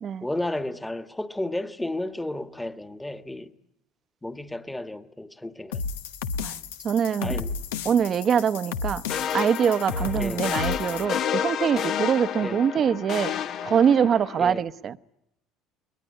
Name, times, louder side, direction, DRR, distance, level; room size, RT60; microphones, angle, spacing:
voice 1, 0.2-3.5 4.2-5.8 7.2-7.5 10.2-10.5 12.4-12.6 14.4-14.6, left 1 dB, 10° left, 1.5 m, -32 dB
sound 1, 5.7-11.0, left 5 dB, 85° left, 1.1 m, -33 dB
voice 2, 6.8-7.3 7.8-9.0 9.3-13.3 13.6-15.0, right 8 dB, 45° right, 0.8 m, -23 dB
sound 2, 9.1-14.4, left 8 dB, 55° left, 1.1 m, -30 dB
21.5 x 21.0 x 10.0 m
hypercardioid pair, 75°, 0 cm